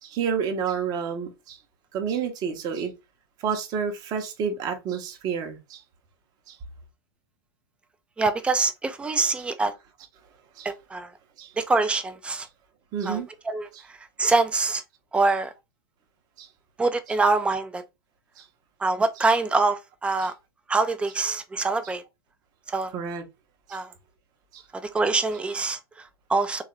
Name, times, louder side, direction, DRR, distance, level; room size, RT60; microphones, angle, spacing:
voice 1, 0.0-1.6 1.9-2.9 3.4-5.8 6.5-6.6 10.6-10.7 11.4-11.5 12.9-13.3 16.4-16.5 18.4-18.5 22.9-23.2 23.7-23.8 24.5-24.6, right 6 dB, 30° right, 0.8 m, -29 dB
voice 2, 8.2-9.7 10.6-11.1 11.6-12.5 13.0-14.8 15.1-15.5 16.8-17.8 18.8-20.3 20.7-22.0 22.7-22.9 23.7-23.9 24.7-26.6, right 3 dB, 10° right, 0.4 m, -25 dB
3.5 x 2.4 x 3.0 m
figure-of-eight pair, 95°, 13 cm